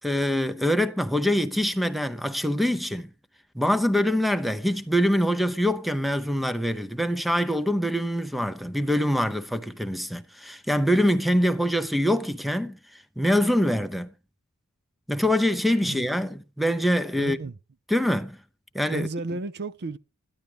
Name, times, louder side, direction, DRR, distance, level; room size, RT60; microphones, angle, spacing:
voice 1, 0.0-3.1 3.5-12.8 13.2-14.1 15.1-17.4 17.9-18.4 18.7-19.1, equal, ahead, 0.7 m, -24 dB
voice 2, 17.2-17.6 18.9-20.0, right 3 dB, 50° right, 0.6 m, -33 dB
14.0 x 11.0 x 5.0 m
head